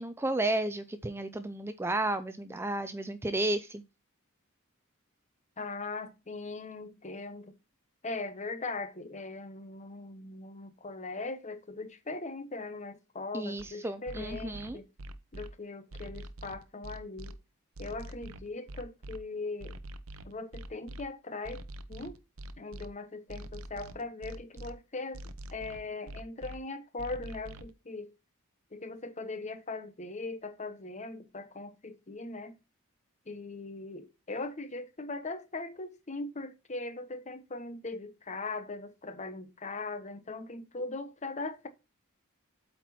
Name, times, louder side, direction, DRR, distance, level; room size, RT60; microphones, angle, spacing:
voice 1, 0.0-3.8 13.3-14.8, right 2 dB, 10° right, 0.4 m, -32 dB
voice 2, 5.6-7.5 8.0-14.9 15.3-17.4 17.8-19.8 20.2-21.6 21.9-22.2 22.6-25.2 25.5-28.1 28.7-32.5 33.3-41.7, left 3 dB, 35° left, 1.0 m, -40 dB
sound 1, 13.6-13.7 14.1-15.5 15.9-17.3 17.8-19.2 19.6-21.0 21.4-22.9 23.3-24.7 25.1-26.6 27.0-27.7, right 1 dB, 70° right, 0.8 m, -44 dB
8.2 x 4.5 x 4.3 m
head